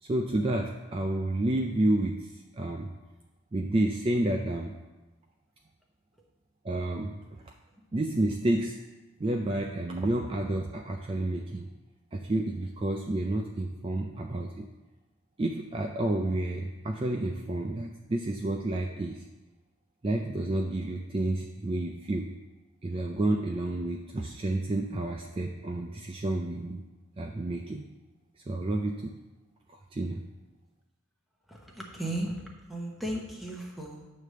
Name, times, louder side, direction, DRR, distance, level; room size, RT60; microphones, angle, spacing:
voice 1, 0.0-2.9 3.5-4.8 6.6-7.4 7.9-8.8 9.2-11.7 12.1-14.7 15.4-19.3 20.0-22.3 22.8-26.8 27.2-27.9 28.4-29.2 29.9-30.2, right 1 dB, 25° right, 2 dB, 0.3 m, -30 dB
voice 2, 31.5-34.1, right 1 dB, ahead, -2 dB, 0.9 m, -36 dB
8.7 x 3.3 x 6.6 m, 1.1 s
head